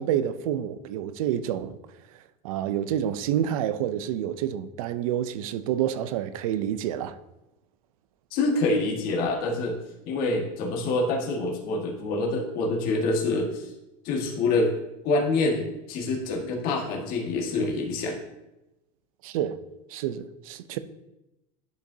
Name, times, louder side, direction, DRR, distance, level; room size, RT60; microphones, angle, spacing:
voice 1, 0.0-1.8 2.4-7.2 19.2-19.6 19.9-20.8, right 10 dB, 80° right, 0.6 m, -28 dB
voice 2, 8.3-9.8 10.0-13.7 14.0-14.7 15.0-18.2, left 2 dB, 55° left, 1.6 m, -26 dB
10.5 x 5.1 x 2.7 m
supercardioid pair, 115°, 18 cm